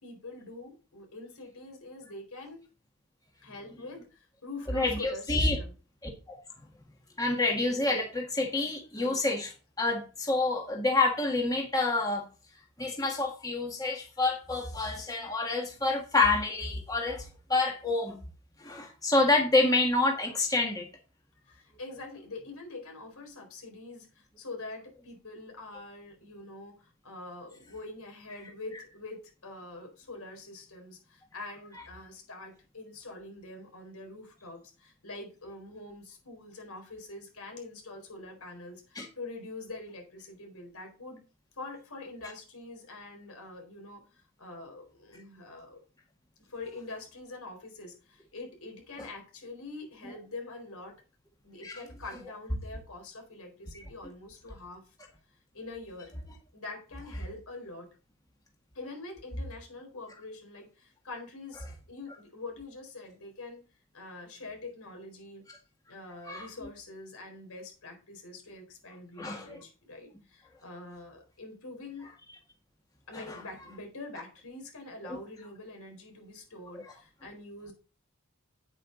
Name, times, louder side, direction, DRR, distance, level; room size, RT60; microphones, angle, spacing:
voice 1, 0.0-2.6 3.4-5.7 21.5-41.2 41.6-44.0 44.4-45.8 46.4-50.9 51.4-54.8 55.5-56.1 56.5-57.9 58.7-63.6 63.9-65.4 65.9-72.1 73.1-77.7, left 2 dB, 90° left, 3 dB, 4.2 m, -45 dB
voice 2, 4.7-5.6 6.3-6.4 7.2-12.2 12.8-18.2 18.6-20.8 38.9-39.0 49.0-49.1 51.6-51.7 66.3-66.5 69.2-69.6 75.0-75.2, left 2 dB, 15° left, 1 dB, 1.8 m, -28 dB
8.9 x 8.9 x 3.9 m, 0.34 s
head